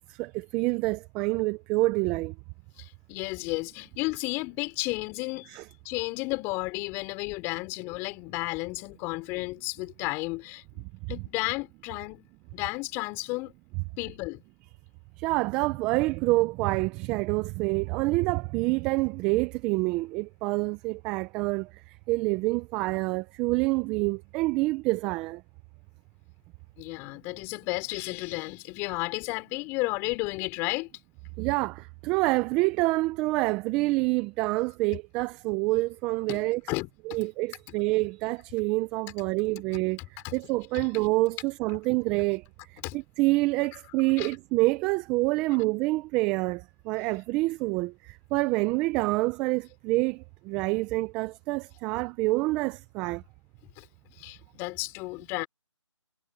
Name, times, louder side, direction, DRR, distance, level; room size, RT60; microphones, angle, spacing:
voice 1, 0.1-2.3 5.5-5.6 15.2-25.4 31.4-36.6 37.1-53.2, right 22 dB, 5° right, 0.4 m, -27 dB
voice 2, 2.8-5.6 5.8-12.3 12.5-13.5 14.0-14.4 26.8-30.9 36.3-37.2 40.2-40.3 40.7-40.9 42.8-43.0 44.2-44.3 53.8-53.9 54.2-55.5, left 25 dB, 15° left, 4.4 m, -33 dB
figure-of-eight pair, 155°, 16 cm